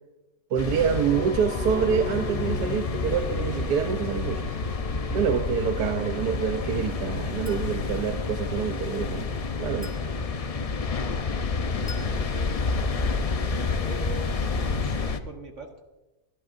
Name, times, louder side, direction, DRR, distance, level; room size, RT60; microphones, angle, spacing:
voice 1, 0.5-4.4 5.1-9.3 9.6-9.9, right 7 dB, 85° right, 6 dB, 1.3 m, -26 dB
sound 1, 0.6-15.2, left 4 dB, 65° left, 0.3 m, -29 dB
sound 2, 1.1-10.4 10.8-10.9, left 3 dB, 45° left, 1.0 m, -37 dB
Chink clink, 7.5-7.8 9.8-10.2 11.9-12.2, left 3 dB, 5° left, 2.1 m, -44 dB
voice 2, 12.0-12.6 13.1-15.8, right 2 dB, 50° right, 3 dB, 1.5 m, -42 dB
29.0 x 11.0 x 2.6 m, 1.1 s
omnidirectional pair, 1.7 m